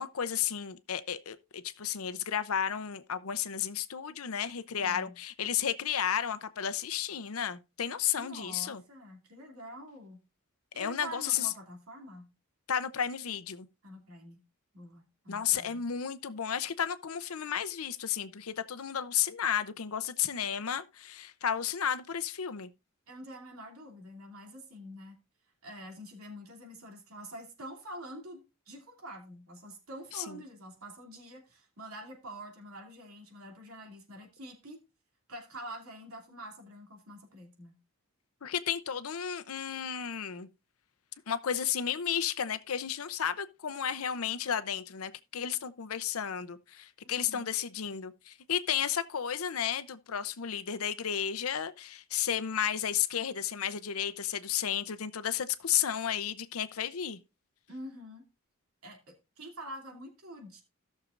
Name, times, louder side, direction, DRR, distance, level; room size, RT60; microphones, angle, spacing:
voice 1, 0.0-8.8 10.8-11.5 12.7-13.7 15.3-22.7 30.1-30.4 38.4-40.5 41.3-57.2, left 9 dB, 80° left, 0.7 m, -33 dB
voice 2, 4.8-5.2 8.2-10.2 10.7-12.3 13.8-14.4 14.7-15.8 23.1-25.2 25.6-34.8 35.3-37.8 47.2-47.5 57.7-58.2 58.8-60.6, equal, 85° right, 2.7 m, -46 dB
16.5 x 6.5 x 2.5 m
head